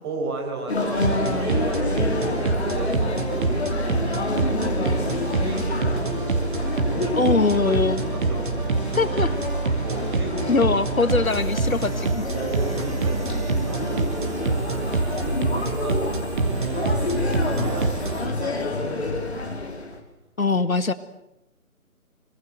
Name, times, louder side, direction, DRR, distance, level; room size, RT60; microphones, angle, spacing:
voice 1, 0.0-3.7 4.4-6.5 6.9-8.7 9.8-10.6 12.3-17.2 17.5-19.6, right 2 dB, 15° right, -1 dB, 5.6 m, -35 dB
voice 2, 0.7-1.6 7.2-8.0 8.9-9.3 10.5-12.3 20.4-20.9, left 4 dB, 70° left, 12 dB, 1.9 m, -23 dB
sound 1, 0.7-20.0, left 3 dB, 50° left, 5.1 m, -29 dB
sound 2, 1.0-18.3, right 3 dB, 35° right, 2.7 m, -26 dB
sound 3, 11.2-18.3, right 3 dB, 55° right, 7.9 m, -48 dB
26.5 x 25.5 x 7.9 m, 0.86 s
figure-of-eight pair, 155°, 43 cm